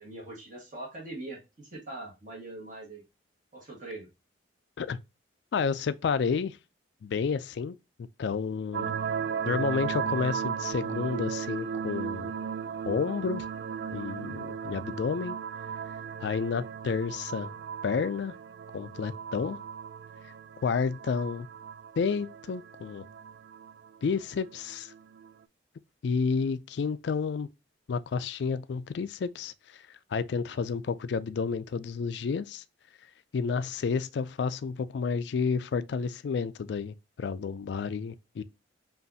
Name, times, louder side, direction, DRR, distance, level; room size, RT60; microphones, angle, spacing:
voice 1, 0.0-3.0 3.5-4.1 30.5-30.7, right 2 dB, 45° right, 1.5 m, -42 dB
voice 2, 5.5-6.6 7.0-7.8 8.2-8.9 9.5-12.3 12.9-13.5 13.9-15.4 16.2-17.5 17.8-18.3 18.7-19.6 20.6-21.5 22.0-23.1 24.0-24.9 26.0-27.5 27.9-32.6 33.3-38.4, left 5 dB, 65° left, 0.3 m, -30 dB
sound 1, 8.7-25.3, right 7 dB, 60° right, 0.3 m, -36 dB
5.4 x 2.5 x 2.6 m
head